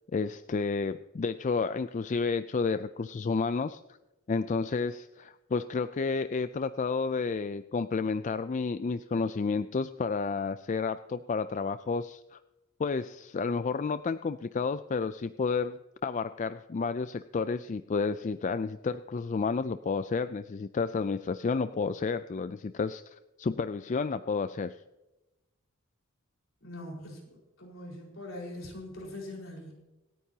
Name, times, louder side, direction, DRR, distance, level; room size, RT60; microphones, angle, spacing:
voice 1, 0.1-3.8 4.3-12.4 12.8-24.8, left 4 dB, 35° left, 12 dB, 0.4 m, -31 dB
voice 2, 26.6-29.7, left 1 dB, 65° left, -1 dB, 4.7 m, -42 dB
26.0 x 9.4 x 2.8 m, 1.0 s
head